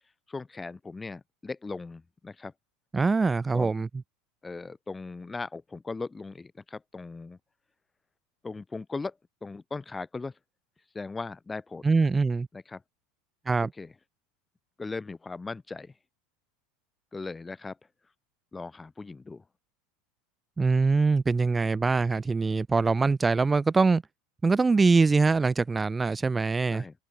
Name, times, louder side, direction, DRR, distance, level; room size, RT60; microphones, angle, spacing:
voice 1, 0.3-2.5 3.5-3.7 4.4-7.4 8.4-9.1 9.4-10.3 10.9-11.8 12.5-12.8 13.8-13.9 14.8-15.9 17.1-17.8 18.5-19.4 26.7-26.9, left 3 dB, 15° left, 5.2 m, -38 dB
voice 2, 2.9-3.9 11.8-12.5 13.5-13.7 20.6-24.0 24.4-26.8, right 4 dB, 15° right, 5.0 m, -23 dB
figure-of-eight pair, 75°, 0 cm